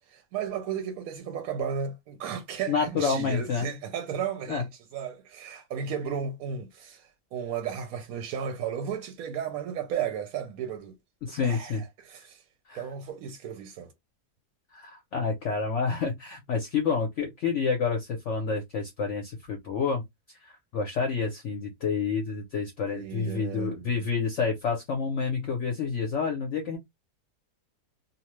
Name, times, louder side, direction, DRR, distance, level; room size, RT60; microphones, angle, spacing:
voice 1, 0.1-4.7 4.9-11.0 11.4-12.4 12.7-13.9 22.9-23.9, right 7 dB, 70° right, 0.9 m, -34 dB
voice 2, 2.7-3.7 4.5-4.6 11.2-11.8 12.7-12.8 14.7-20.0 20.3-26.8, left 5 dB, 60° left, 0.8 m, -29 dB
2.8 x 2.1 x 3.0 m
omnidirectional pair, 1.7 m